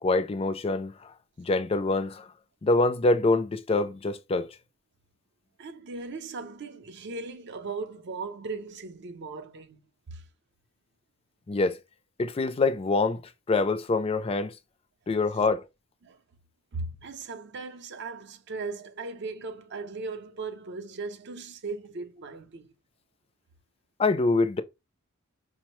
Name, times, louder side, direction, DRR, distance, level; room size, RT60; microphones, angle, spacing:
voice 1, 0.0-2.3 2.6-4.5 11.5-11.8 12.2-13.2 13.5-14.6 15.1-15.6 24.0-24.6, left 3 dB, 25° left, 0.3 m, -25 dB
voice 2, 5.6-9.8 10.1-10.2 16.0-16.2 16.7-22.7, right 3 dB, 55° right, 0.5 m, -38 dB
5.1 x 2.0 x 3.0 m
head